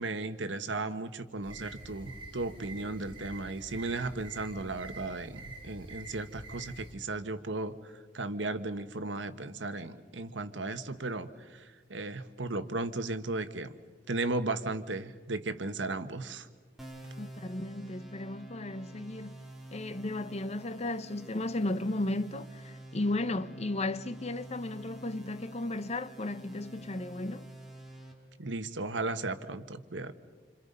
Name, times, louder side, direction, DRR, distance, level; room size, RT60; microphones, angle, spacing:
voice 1, 0.0-13.7 14.1-16.5 28.4-30.1, right 2 dB, 75° right, 1.3 m, -35 dB
sound 1, 1.4-6.9, right 2 dB, 25° right, 4.7 m, -47 dB
sound 2, 16.8-28.1, right 1 dB, ahead, 3.7 m, -48 dB
voice 2, 17.2-19.4 19.7-27.5, left 2 dB, 35° left, 0.8 m, -35 dB
28.0 x 27.0 x 5.5 m
head